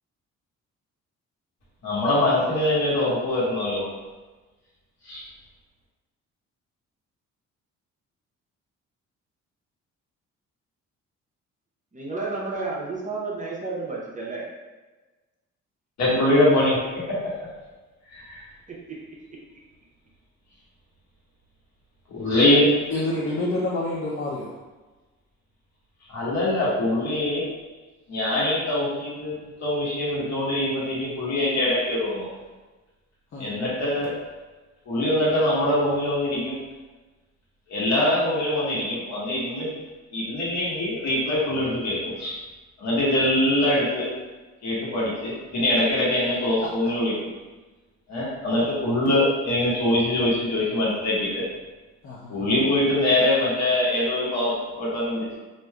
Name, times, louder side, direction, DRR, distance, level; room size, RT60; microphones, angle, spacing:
voice 1, 1.8-3.8 5.0-5.2 16.0-17.3 18.1-18.4 22.1-22.7 26.1-27.4 28.1-29.3 29.6-32.3 33.4-34.1 34.9-36.6 37.7-39.7 40.1-42.4 42.8-44.1 44.6-47.3 48.1-51.4 52.3-55.4, left 1 dB, 65° left, -7 dB, 1.3 m, -23 dB
voice 2, 11.9-14.4 18.9-19.0, right 3 dB, 25° right, -4 dB, 0.7 m, -31 dB
voice 3, 22.9-24.5 33.3-33.5 52.0-52.5, left 2 dB, 45° left, -5 dB, 0.6 m, -28 dB
3.4 x 2.6 x 2.2 m, 1.2 s
cardioid pair, 90°, 30 cm